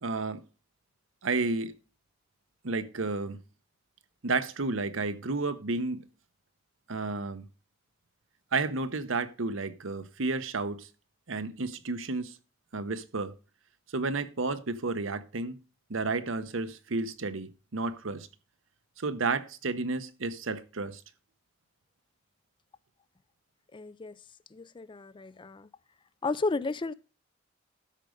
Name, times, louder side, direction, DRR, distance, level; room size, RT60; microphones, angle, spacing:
voice 1, 0.0-0.4 1.2-1.7 2.6-3.4 4.2-6.0 6.9-7.5 8.5-10.9 11.3-12.4 12.7-13.3 13.9-15.6 15.9-18.3 19.0-21.0, right 3 dB, 80° right, 0.9 m, -31 dB
voice 2, 23.7-24.2 24.5-25.7 26.2-26.9, left 3 dB, 25° left, 0.4 m, -33 dB
12.5 x 5.2 x 5.1 m
head